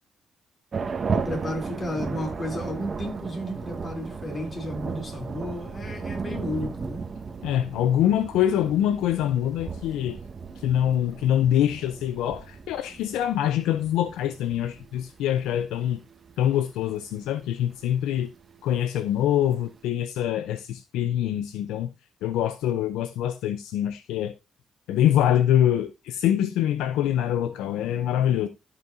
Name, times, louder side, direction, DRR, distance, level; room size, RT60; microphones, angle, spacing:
sound 1, 0.7-19.9, right 5 dB, 45° right, 1.2 m, -36 dB
voice 1, 1.1-7.0, left 1 dB, 45° left, 3.1 m, -33 dB
voice 2, 7.4-10.2 10.6-16.0 16.4-18.3 18.6-21.9 22.2-24.3 24.9-28.5, left 11 dB, 85° left, 0.5 m, -24 dB
14.5 x 5.7 x 2.6 m
supercardioid pair, 60°, 0 cm